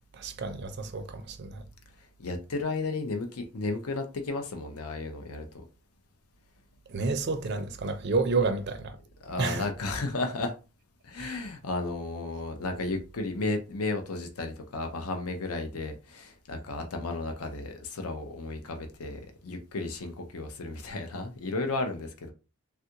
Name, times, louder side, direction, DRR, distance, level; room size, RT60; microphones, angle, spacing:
voice 1, 0.1-1.6 6.9-9.0 9.4-9.7 11.2-11.4, right 3 dB, 50° right, 0.4 m, -30 dB
voice 2, 2.2-5.6 9.2-10.5 11.0-22.3, left 3 dB, 85° left, 0.6 m, -33 dB
3.4 x 2.4 x 2.8 m
head